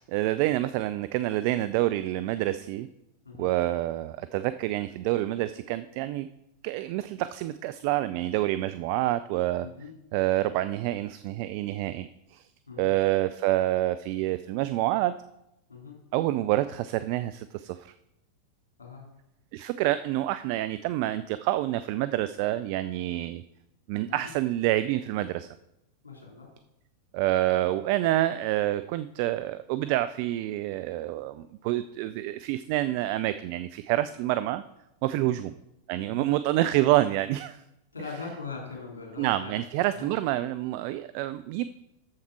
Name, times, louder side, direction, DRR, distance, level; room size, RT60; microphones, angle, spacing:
voice 1, 0.0-2.9 3.4-6.3 6.6-9.7 10.1-12.4 12.8-15.1 16.1-17.9 19.5-23.4 23.9-25.5 27.1-34.6 35.0-35.5 35.9-37.6 39.2-41.6, right 15 dB, 45° right, 13 dB, 0.3 m, -27 dB
voice 2, 9.6-9.9 12.7-12.9 15.7-15.9 18.8-19.0 24.1-24.3 26.0-26.5 35.1-35.4 36.1-36.3 37.9-39.5 39.9-40.1, left 4 dB, 70° left, -1 dB, 3.2 m, -41 dB
7.4 x 7.2 x 4.6 m, 0.85 s
figure-of-eight pair, 90°, 0 cm